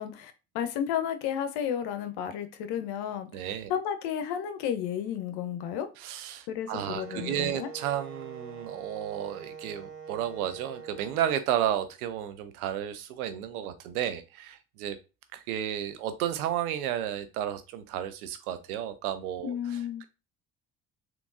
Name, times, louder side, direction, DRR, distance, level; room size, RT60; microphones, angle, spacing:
voice 1, 0.0-3.4 3.7-5.9 6.5-7.7 19.4-20.0, left 9 dB, 65° left, 9 dB, 0.7 m, -32 dB
voice 2, 3.3-3.7 6.0-15.0 15.3-20.0, right 10 dB, 85° right, 10 dB, 0.6 m, -32 dB
Wind instrument woodwind instrument, 6.7-11.3, right 5 dB, 30° right, 1.1 m, -44 dB
3.5 x 2.9 x 2.5 m, 0.30 s
hypercardioid pair, 55°, 43 cm